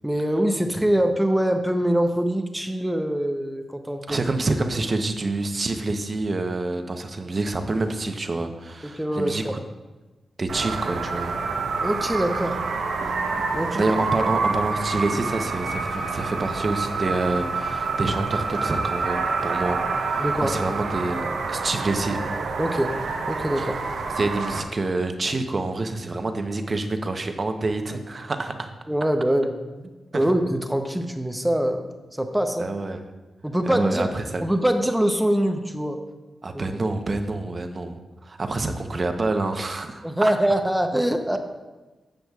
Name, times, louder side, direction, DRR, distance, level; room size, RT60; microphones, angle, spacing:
voice 1, 0.0-4.2 8.8-9.6 11.8-12.6 13.5-13.9 20.2-20.5 22.6-23.0 23.3-23.8 28.9-29.5 30.1-32.7 33.4-34.1 34.4-36.0 36.5-36.6 40.0-41.4, right 1 dB, 5° right, 6 dB, 0.7 m, -23 dB
voice 2, 4.1-9.4 10.4-11.3 13.7-22.2 23.6-23.7 24.2-28.7 30.1-30.2 32.6-33.0 33.7-34.4 36.4-40.3, right 2 dB, 40° right, 6 dB, 0.8 m, -27 dB
sound 1, 10.5-24.6, right 4 dB, 85° right, 0.8 m, -27 dB
12.0 x 7.7 x 2.3 m, 1.2 s
cardioid pair, 85°, 0 cm